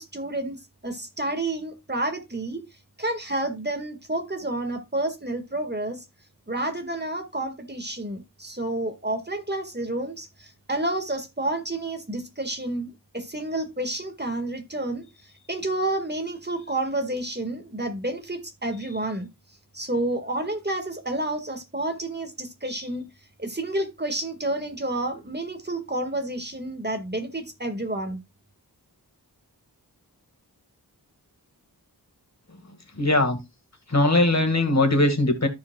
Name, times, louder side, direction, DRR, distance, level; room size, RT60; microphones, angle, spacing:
voice 1, 0.0-2.7 3.0-6.0 6.5-19.3 19.7-23.1 23.4-28.2, right 1 dB, 25° right, 1.8 m, -30 dB
voice 2, 33.0-33.4 33.9-35.5, left 2 dB, 40° left, 1.8 m, -20 dB
14.0 x 4.9 x 2.3 m
wide cardioid pair, 55°, 40 cm